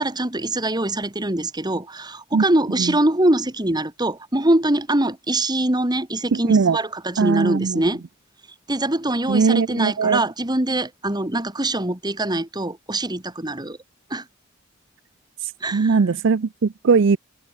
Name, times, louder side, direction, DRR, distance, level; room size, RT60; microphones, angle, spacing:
voice 1, 0.0-8.0 8.7-13.8 14.1-14.3 15.6-16.0, right 1 dB, 20° right, 2.3 m, -23 dB
voice 2, 6.3-6.8 7.2-7.9 9.3-10.2 15.4-17.2, right 5 dB, 60° right, 0.5 m, -19 dB
head